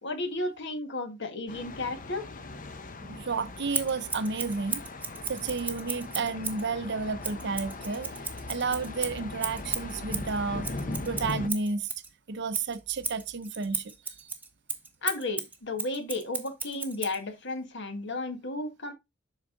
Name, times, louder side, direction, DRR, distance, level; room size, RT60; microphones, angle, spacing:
voice 1, 0.0-2.2 15.0-18.9, left 2 dB, 60° left, 1.6 m, -33 dB
Thunder, 1.5-11.5, left 2 dB, 40° left, 0.8 m, -39 dB
voice 2, 3.1-4.8 5.3-8.1 8.5-10.7 11.1-11.9 12.3-14.3, right 4 dB, 55° right, 0.7 m, -31 dB
Scissors, 3.7-6.7 7.2-12.1 12.5-17.2, right 4 dB, 10° right, 1.0 m, -35 dB
8.0 x 5.6 x 3.8 m
head